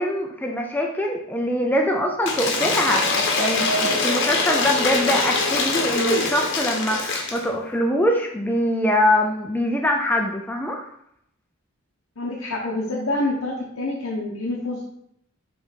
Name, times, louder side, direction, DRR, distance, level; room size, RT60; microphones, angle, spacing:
voice 1, 0.0-10.9, equal, 10° left, 1 dB, 0.5 m, -23 dB
Cheering / Applause / Crowd, 2.2-7.4, left 3 dB, 55° left, 1.0 m, -23 dB
voice 2, 12.2-14.8, left 2 dB, 85° left, -4 dB, 1.0 m, -27 dB
6.9 x 3.4 x 4.1 m, 0.72 s
head